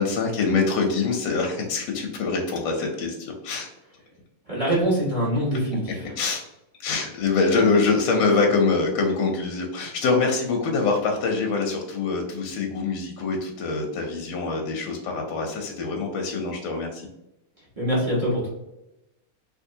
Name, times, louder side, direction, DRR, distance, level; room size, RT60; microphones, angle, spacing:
voice 1, 0.0-3.7 6.2-6.4 6.8-17.0, left 4 dB, 75° left, 1 dB, 1.2 m, -24 dB
voice 2, 4.4-6.1 17.6-18.5, equal, 20° right, -7 dB, 1.0 m, -24 dB
3.5 x 2.7 x 2.7 m, 0.91 s
omnidirectional pair, 2.4 m